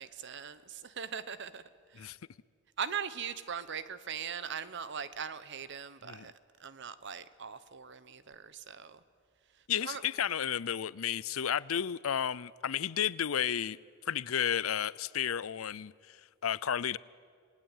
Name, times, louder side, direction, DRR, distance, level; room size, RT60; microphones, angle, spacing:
voice 1, 0.0-1.6 1.9-2.1 2.8-6.3 6.6-9.0 9.8-10.0, right 7 dB, 60° right, 14 dB, 1.0 m, -40 dB
voice 2, 9.7-13.8 14.1-17.0, left 9 dB, 85° left, 21 dB, 0.6 m, -32 dB
27.5 x 19.0 x 9.1 m, 2.1 s
head